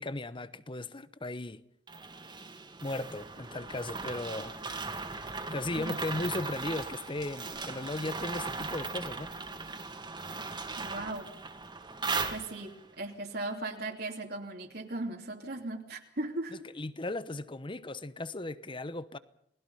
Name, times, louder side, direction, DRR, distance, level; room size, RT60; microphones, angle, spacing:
voice 1, 0.0-1.6 2.8-4.6 5.5-9.3 16.5-19.2, left 2 dB, 30° left, 0.9 m, -36 dB
sound 1, 1.9-12.9, right 4 dB, 25° right, 2.6 m, -38 dB
voice 2, 10.8-11.3 12.3-16.5, right 2 dB, 60° right, 2.9 m, -37 dB
30.0 x 20.0 x 5.6 m
head